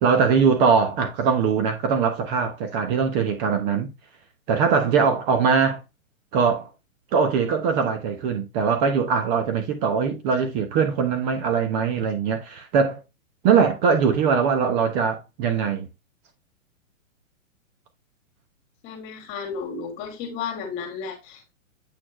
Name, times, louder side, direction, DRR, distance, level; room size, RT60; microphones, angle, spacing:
voice 1, 0.0-3.9 4.5-5.8 6.3-6.7 7.1-13.0 13.4-15.9, right 6 dB, 30° right, 1.2 m, -21 dB
voice 2, 18.8-21.5, left 6 dB, 30° left, 2.4 m, -33 dB
8.4 x 4.3 x 3.1 m
hypercardioid pair, 135°, 41 cm